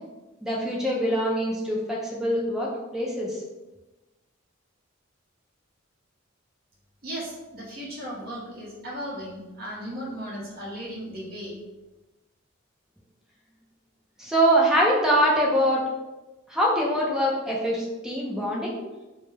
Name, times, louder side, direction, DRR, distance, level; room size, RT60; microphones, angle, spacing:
voice 1, 0.4-3.4 14.2-15.8 16.5-18.7, equal, ahead, -3 dB, 0.3 m, -23 dB
voice 2, 7.0-11.6, equal, 45° right, -4 dB, 0.7 m, -36 dB
2.2 x 2.0 x 3.1 m, 1.1 s
head